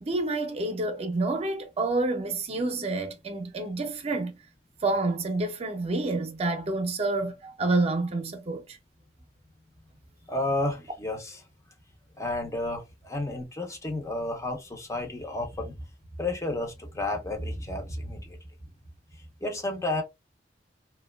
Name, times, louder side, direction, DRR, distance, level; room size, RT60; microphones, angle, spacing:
voice 1, 0.0-4.3 4.8-8.8, right 2 dB, 35° right, 0.5 m, -28 dB
voice 2, 10.3-11.4 12.2-15.7 16.2-18.4 19.4-20.0, left 2 dB, 15° left, 0.5 m, -31 dB
2.9 x 2.2 x 2.2 m
head